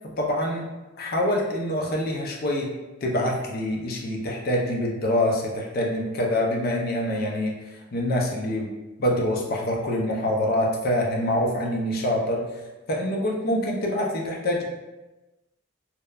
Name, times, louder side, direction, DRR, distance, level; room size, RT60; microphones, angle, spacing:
voice 1, 0.2-0.7 1.0-2.7 3.0-7.5 7.9-8.7 9.0-12.4 12.9-14.6, left 1 dB, 50° left, -1 dB, 0.4 m, -25 dB
2.8 x 2.1 x 2.2 m, 1.1 s
head